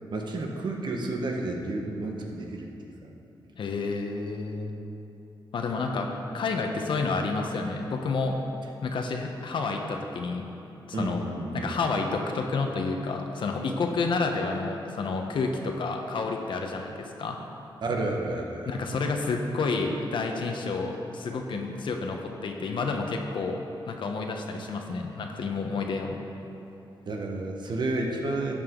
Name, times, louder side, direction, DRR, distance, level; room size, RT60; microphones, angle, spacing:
voice 1, 0.1-2.7 3.0-3.1 10.9-11.7 17.8-18.7 27.1-28.6, right 2 dB, 60° right, 1 dB, 1.4 m, -31 dB
voice 2, 3.6-4.7 5.5-6.1 6.3-8.3 8.8-10.4 10.9-11.2 11.5-17.4 18.7-26.2, left 4 dB, 70° left, 2 dB, 1.1 m, -30 dB
13.0 x 8.7 x 3.9 m, 2.9 s
cardioid pair, 90°, 9 cm